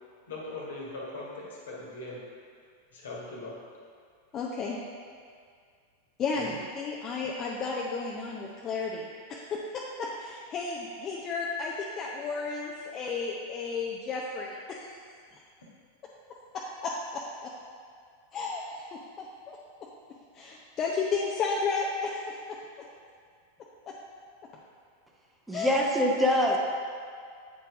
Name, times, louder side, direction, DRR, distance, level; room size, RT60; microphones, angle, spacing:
voice 1, 0.3-2.2 2.9-3.6 6.3-6.6, left 2 dB, 65° left, -3 dB, 1.4 m, -40 dB
voice 2, 4.3-4.8 6.2-15.0 16.5-17.5 18.3-19.9 20.3-22.6 23.9-24.0 25.5-25.8, left 4 dB, 30° left, -3 dB, 0.6 m, -33 dB
voice 3, 25.5-26.6, left 1 dB, 5° right, -2 dB, 0.7 m, -24 dB
8.2 x 4.4 x 3.6 m, 2.1 s
figure-of-eight pair, 90°, 0 cm